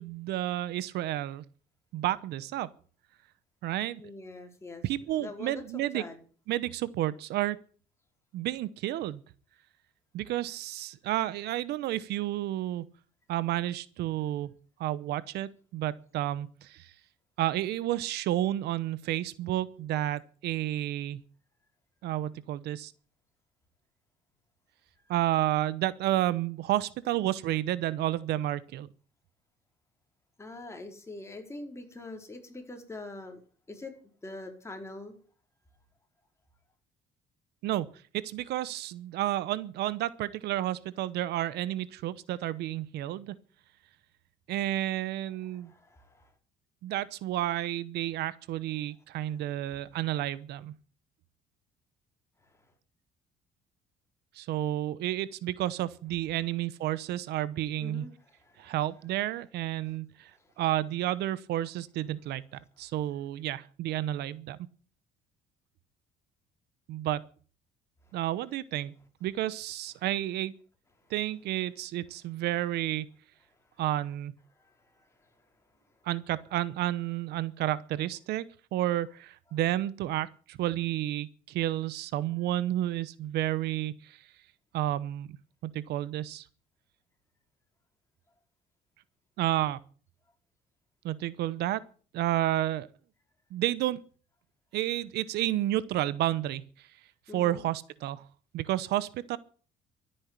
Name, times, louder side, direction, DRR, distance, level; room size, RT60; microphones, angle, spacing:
voice 1, 0.0-1.4 1.9-2.7 3.6-4.0 4.8-6.0 6.5-7.6 8.3-9.2 10.1-12.9 13.3-14.5 14.8-16.9 17.4-21.2 22.0-22.9 25.1-28.9 37.6-37.9 38.1-43.3 44.5-45.7 46.8-50.7 54.3-58.1 58.6-60.3 60.6-64.6 66.9-67.2 68.1-68.9 69.2-70.5 71.1-73.1 73.8-74.3 76.0-78.4 78.7-84.2 84.7-85.4 85.6-86.5 89.4-89.8 91.0-91.8 92.1-92.9 93.5-94.0 94.7-96.9 97.3-98.2 98.5-99.4, right 14 dB, 80° right, 18 dB, 0.9 m, -31 dB
voice 2, 4.0-6.2 25.0-25.1 30.4-33.4 33.7-33.9 34.2-35.1 45.5-46.3 48.7-48.9 49.2-50.0 52.4-52.7 57.8-58.8 59.9-60.0 60.3-60.5 62.8-62.9 68.0-68.2 71.0-71.1 73.5-73.8 74.5-76.0 97.3-97.6, left 2 dB, 15° left, 3 dB, 4.9 m, -45 dB
13.5 x 10.0 x 9.8 m, 0.42 s
cardioid pair, 110°, 17 cm